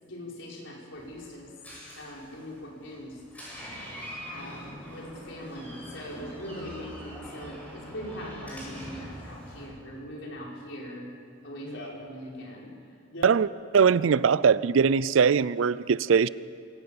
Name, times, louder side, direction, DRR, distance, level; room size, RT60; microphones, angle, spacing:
voice 1, 0.0-1.5 2.0-3.2 4.3-11.0 11.4-12.7 13.1-13.3, equal, 70° left, 4.9 m, -41 dB
Door, 0.9-9.7, equal, 10° left, 7.8 m, -43 dB
voice 2, 13.7-16.3, right 6 dB, 85° right, 0.4 m, -21 dB
23.5 x 17.5 x 7.1 m
head